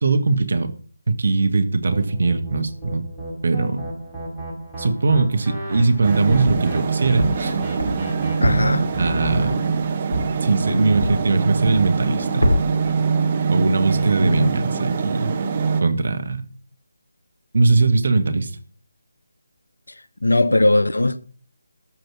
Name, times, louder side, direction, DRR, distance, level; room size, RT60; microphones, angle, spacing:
voice 1, 0.0-0.7 1.1-3.0 3.4-3.8 4.8-7.6 9.0-9.6 10.4-12.5 13.5-15.3 15.8-16.4 17.5-18.5, right 3 dB, 50° right, 1.4 m, -20 dB
sound 1, 1.9-9.5, equal, ahead, 4.3 m, -33 dB
sound 2, 5.8-6.8 7.2-11.4 11.6-12.1 12.4-12.9, equal, 85° right, 2.4 m, -25 dB
sound 3, 6.0-15.8, right 5 dB, 30° right, 1.4 m, -24 dB
voice 2, 8.4-8.9 14.2-14.5 20.2-21.2, left 2 dB, 65° left, 0.8 m, -19 dB
13.5 x 5.1 x 6.3 m
figure-of-eight pair, 150°, 0 cm